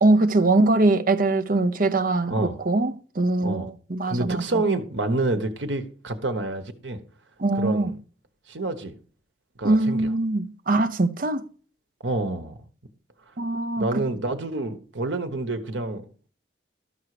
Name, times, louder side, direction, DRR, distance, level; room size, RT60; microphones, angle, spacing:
voice 1, 0.0-4.6 7.4-8.0 9.6-11.4 13.4-14.0, right 2 dB, 50° right, 0.8 m, -22 dB
voice 2, 2.3-2.6 3.4-3.7 4.1-7.0 7.5-7.9 8.5-8.9 9.6-10.1 12.0-12.6 13.8-16.1, right 2 dB, 80° right, 1.2 m, -28 dB
13.0 x 5.6 x 4.9 m
head